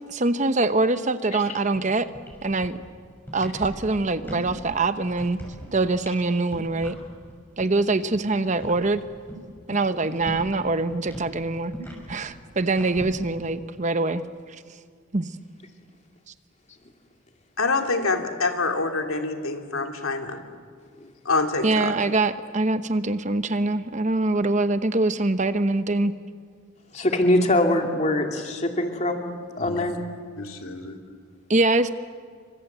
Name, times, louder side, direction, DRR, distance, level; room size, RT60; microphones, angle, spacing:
voice 1, 0.1-2.1 2.4-2.8 3.3-5.4 5.7-7.0 7.6-9.0 9.7-11.7 12.1-14.2 15.1-15.3 21.6-26.1 31.5-31.9, right 2 dB, 35° right, 11 dB, 0.8 m, -24 dB
sound 1, 1.8-1.9 2.1-2.9 3.2-4.6 4.9-5.7 6.0-6.2 6.5-7.0 7.3-7.4 7.6-7.7 8.0-10.6 10.9-13.1, equal, 10° left, 6.3 m, -38 dB
voice 2, 17.6-20.4 21.2-21.9 29.6-29.8 30.4-31.0, left 3 dB, 85° left, 4 dB, 2.9 m, -26 dB
voice 3, 26.9-29.2 29.6-30.0, left 1 dB, 35° left, 4 dB, 2.7 m, -23 dB
29.0 x 25.5 x 8.1 m, 2.1 s
head